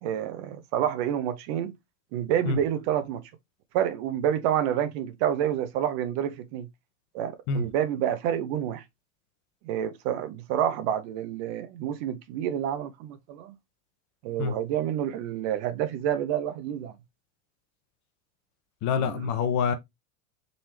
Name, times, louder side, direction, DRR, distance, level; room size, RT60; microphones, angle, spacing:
voice 1, 0.0-1.7 2.1-3.2 3.7-6.7 7.1-8.8 9.6-13.5 14.2-16.9 18.9-19.3, right 10 dB, 55° right, 0.8 m, -28 dB
voice 2, 18.8-19.7, left 6 dB, 40° left, 1.0 m, -26 dB
3.9 x 3.2 x 2.9 m
hypercardioid pair, 95°, 42 cm